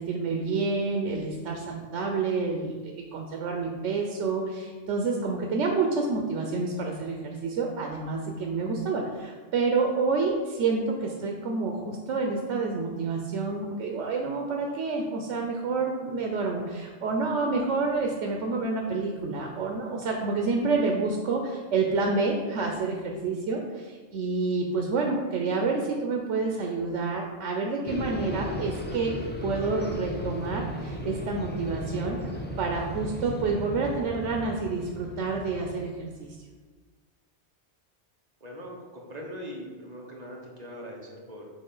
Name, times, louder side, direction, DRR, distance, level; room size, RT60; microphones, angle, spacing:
voice 1, 0.0-29.2 29.4-36.4, right 4 dB, 85° right, 1 dB, 1.0 m, -28 dB
sound 1, 27.9-36.2, left 1 dB, 15° left, 0.4 m, -36 dB
voice 2, 38.4-41.5, equal, 40° right, -1 dB, 1.0 m, -41 dB
6.3 x 4.3 x 3.8 m, 1.4 s
omnidirectional pair, 1.2 m